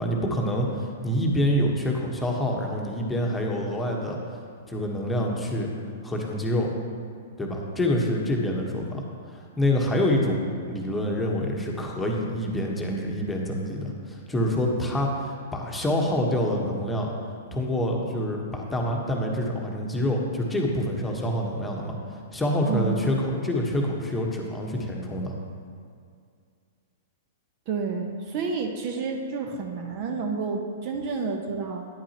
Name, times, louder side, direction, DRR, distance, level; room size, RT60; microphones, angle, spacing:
voice 1, 0.0-4.2 4.7-5.7 6.0-6.7 7.4-17.1 17.5-22.0 22.3-25.3, left 1 dB, 10° left, -1 dB, 1.2 m, -26 dB
voice 2, 22.7-23.1 27.7-31.8, right 5 dB, 45° right, 3 dB, 0.8 m, -30 dB
9.6 x 8.6 x 2.9 m, 2.2 s
hypercardioid pair, 115°, 0 cm